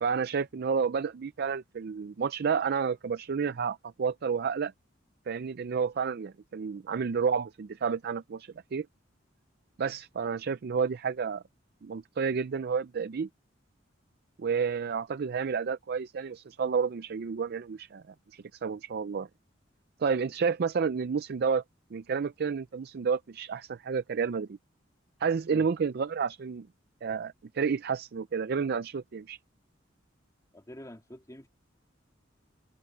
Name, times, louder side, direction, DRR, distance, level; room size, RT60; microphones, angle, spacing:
voice 1, 0.0-4.7 5.3-8.9 9.8-11.4 11.8-13.3 14.4-19.3 20.0-21.6 21.9-24.6 25.2-26.7 27.0-29.4, right 6 dB, 55° right, 0.4 m, -30 dB
voice 2, 30.5-31.5, left 1 dB, 20° left, 2.8 m, -47 dB
head